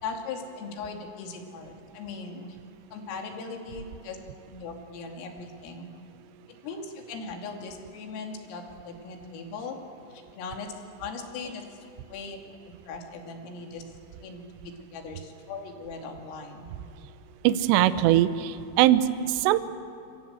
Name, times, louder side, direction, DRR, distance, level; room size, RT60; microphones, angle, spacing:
voice 1, 0.0-2.6 2.9-4.2 4.5-5.9 6.6-9.8 10.1-10.7 11.0-11.6 12.1-13.8 14.2-16.7, left 4 dB, 85° left, 3 dB, 5.1 m, -39 dB
voice 2, 17.4-19.6, right 13 dB, 75° right, 12 dB, 2.6 m, -21 dB
27.5 x 25.0 x 7.9 m, 2.8 s
omnidirectional pair, 5.8 m